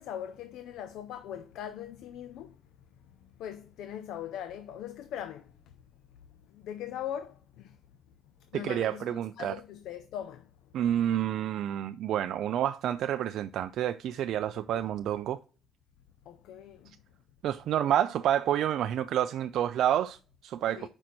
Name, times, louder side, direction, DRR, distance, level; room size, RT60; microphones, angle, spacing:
voice 1, 0.0-2.6 3.4-5.5 6.5-7.8 8.5-10.5 14.7-14.8 16.3-16.9 20.8-20.9, left 10 dB, 90° left, 0.5 m, -40 dB
voice 2, 8.5-9.6 10.7-15.4 17.4-20.9, right 11 dB, 80° right, 0.3 m, -29 dB
5.3 x 4.3 x 6.1 m
cardioid pair, 90°, 0 cm